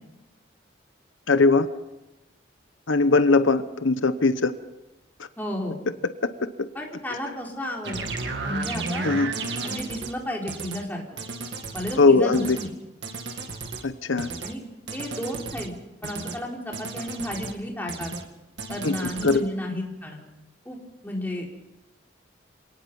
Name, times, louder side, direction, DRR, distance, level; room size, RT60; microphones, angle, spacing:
voice 1, 1.3-1.7 2.9-4.5 9.0-9.3 12.0-12.6 13.8-14.3 18.8-19.4, left 3 dB, 85° left, 11 dB, 1.0 m, -20 dB
voice 2, 5.4-5.8 6.7-8.0 8.4-9.1 9.6-11.0 11.7-12.7 14.4-14.6 14.9-15.7 16.0-18.1 18.7-20.2 20.6-20.8 21.0-21.5, left 1 dB, 10° left, -1 dB, 4.1 m, -32 dB
sound 1, 7.8-10.1 10.5-10.8 11.2-12.0 12.3-12.7 13.0-13.8 14.2-14.5 14.9-15.7 16.0-16.4 16.7-17.5 17.9-18.2 18.6-19.4, right 3 dB, 65° right, 2.2 m, -33 dB
27.0 x 19.0 x 5.5 m, 1.0 s
head